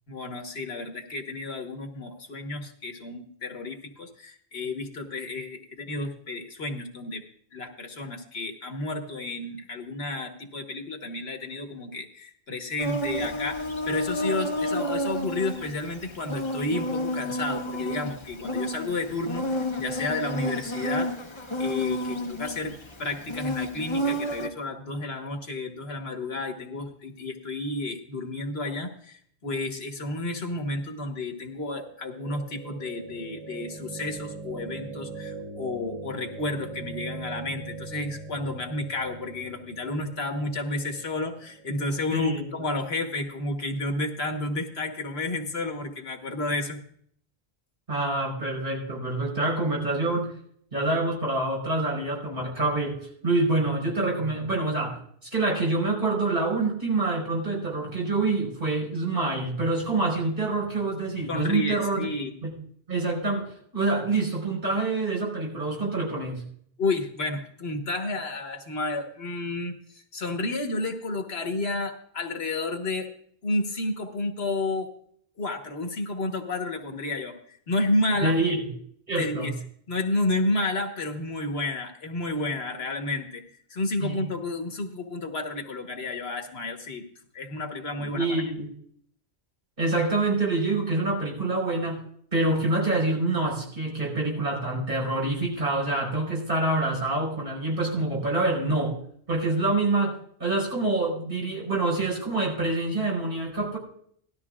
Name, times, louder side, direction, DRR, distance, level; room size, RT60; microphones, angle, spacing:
voice 1, 0.1-7.2 7.5-21.1 21.6-46.8 61.3-62.3 66.8-73.1 73.4-74.9 75.4-78.4 79.2-79.5 79.9-83.4 83.7-87.0 87.3-88.3, left 2 dB, 70° left, 4 dB, 1.6 m, -31 dB
Insect, 12.8-24.5, equal, 30° left, 1.0 m, -31 dB
sound 1, 31.6-43.6, right 3 dB, 35° right, 5.2 m, -41 dB
voice 2, 42.1-42.5 47.9-50.3 50.7-55.0 55.3-62.1 62.4-62.6 62.9-66.4 78.2-78.6 79.1-79.5 84.0-84.3 88.0-88.7 89.8-92.0 92.3-99.0 99.3-103.8, right 2 dB, 55° right, -3 dB, 4.7 m, -26 dB
18.0 x 13.0 x 2.4 m, 0.63 s
omnidirectional pair, 1.1 m